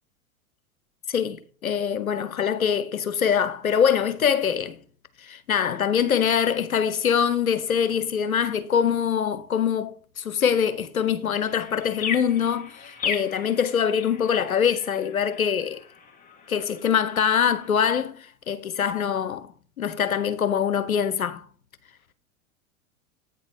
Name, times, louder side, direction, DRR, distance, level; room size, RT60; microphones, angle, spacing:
voice 1, 1.1-4.8 5.2-15.8 16.5-19.5 19.8-21.4, left 7 dB, 85° left, 0.9 m, -24 dB
sound 1, 11.4-17.7, left 6 dB, 20° left, 1.6 m, -37 dB
9.0 x 4.0 x 5.0 m
hypercardioid pair, 95°, 41 cm